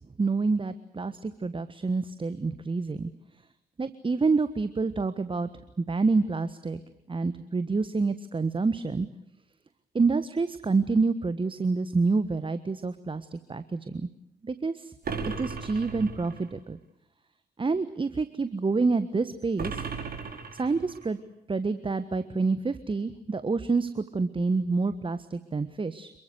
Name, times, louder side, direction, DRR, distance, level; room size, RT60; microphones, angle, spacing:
voice 1, 0.2-3.1 3.8-5.5 5.8-6.8 7.1-9.1 9.9-14.1 14.4-14.9 15.4-16.8 17.6-19.8 20.5-21.2 21.5-26.1, right 4 dB, 25° right, 13 dB, 1.4 m, -27 dB
sound 1, 15.0-16.5 19.6-21.1, right 5 dB, 45° right, 5.2 m, -36 dB
27.5 x 23.0 x 8.2 m, 0.79 s
figure-of-eight pair, 40°, 20 cm